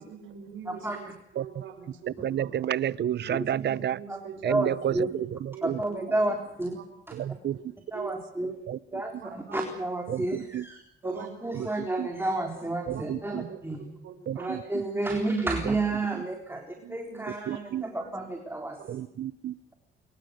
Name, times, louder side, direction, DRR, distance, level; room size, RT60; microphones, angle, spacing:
voice 1, 0.0-1.1 1.3-2.7 3.2-4.4 5.5-5.6 7.2-7.3 7.5-8.2 9.2-9.6 11.0-11.3 12.9-14.5 14.9-15.0 16.8-18.1 18.8-19.0, right 7 dB, 75° right, 6 dB, 5.6 m, -44 dB
voice 2, 0.7-1.1 3.3-3.5 4.1-5.1 5.6-6.8 7.1-7.2 7.9-8.5 8.9-13.9 14.4-18.8, right 2 dB, 10° right, 3 dB, 4.0 m, -31 dB
voice 3, 2.2-4.0 4.4-4.5 7.4-7.5 14.3-14.4 17.5-17.8 18.9-19.5, right 10 dB, 60° right, 20 dB, 0.9 m, -29 dB
24.5 x 22.5 x 6.6 m, 0.77 s
cardioid pair, 90°, 20 cm